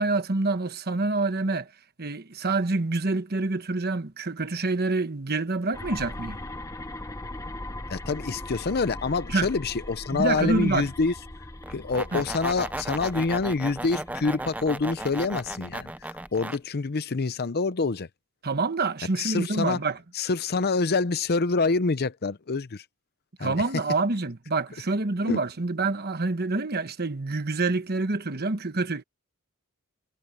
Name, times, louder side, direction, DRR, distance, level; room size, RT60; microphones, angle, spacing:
voice 1, 0.0-1.7 2.0-6.4 9.3-9.5 10.1-10.9 12.1-12.2 18.4-20.0 23.4-29.0, right 3 dB, 45° right, 1.3 m, -27 dB
sound 1, 5.7-16.4, left 1 dB, 15° left, 1.0 m, -40 dB
voice 2, 7.9-11.1 11.7-18.1 19.2-19.8 20.1-22.8 23.4-23.6 25.3-25.4, left 4 dB, 45° left, 0.6 m, -26 dB
sound 2, 11.6-16.6, right 1 dB, 5° right, 0.6 m, -35 dB
head